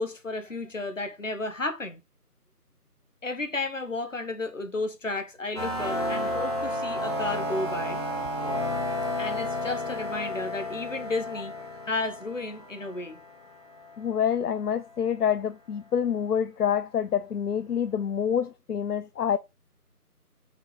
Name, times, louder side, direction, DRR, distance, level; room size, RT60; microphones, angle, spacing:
voice 1, 0.0-2.0 3.2-8.0 9.2-13.2, left 2 dB, 55° left, 1.3 m, -33 dB
sound 1, 5.6-14.2, left 1 dB, 25° left, 1.4 m, -32 dB
voice 2, 14.0-19.4, left 8 dB, 75° left, 0.5 m, -27 dB
5.9 x 3.4 x 5.7 m
figure-of-eight pair, 175°, 47 cm